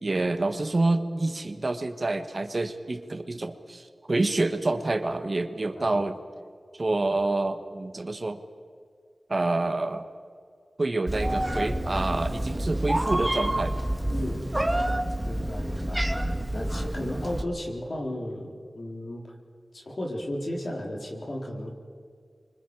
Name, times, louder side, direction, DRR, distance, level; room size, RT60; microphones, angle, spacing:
voice 1, 0.0-6.2 6.7-8.4 9.3-10.0 10.8-13.8, right 2 dB, 50° right, 8 dB, 1.5 m, -27 dB
Meow, 11.1-17.4, right 1 dB, 10° right, 1.7 m, -28 dB
voice 2, 14.1-14.5 15.2-16.1 16.5-19.2 19.7-21.7, left 1 dB, 60° left, 0 dB, 4.0 m, -34 dB
26.0 x 24.5 x 4.9 m, 2.2 s
wide cardioid pair, 55°, 0 cm